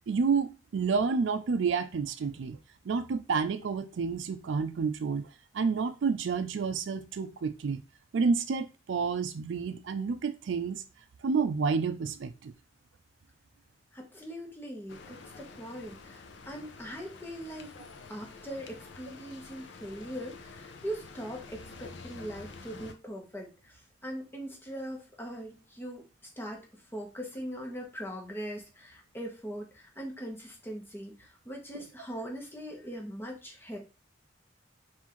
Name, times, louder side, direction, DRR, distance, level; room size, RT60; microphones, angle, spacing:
voice 1, 0.1-2.6 2.9-5.3 5.5-7.8 8.1-10.8 11.2-12.5, right 5 dB, 70° right, 0.4 m, -29 dB
voice 2, 13.9-17.7 18.1-26.0 26.4-26.7 26.9-33.8, equal, 10° left, 1.1 m, -41 dB
sound 1, 14.9-22.9, left 4 dB, 70° left, 0.6 m, -48 dB
5.4 x 2.6 x 3.0 m
head